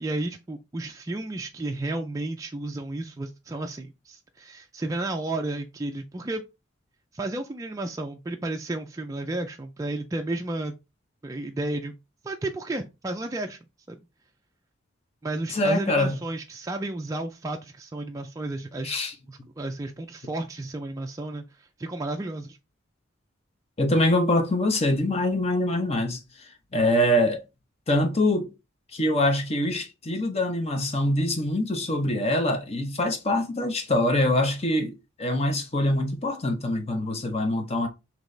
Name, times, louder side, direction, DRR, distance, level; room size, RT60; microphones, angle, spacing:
voice 1, 0.0-6.4 7.1-10.7 11.2-11.9 12.2-13.6 13.9-14.0 15.2-18.9 19.3-22.6, right 2 dB, 15° right, 0.3 m, -32 dB
voice 2, 15.5-16.1 18.8-19.1 23.8-26.2 26.7-27.4 27.9-28.5 28.9-34.9 35.2-37.9, left 1 dB, 30° left, 0.7 m, -24 dB
4.0 x 3.0 x 3.1 m
head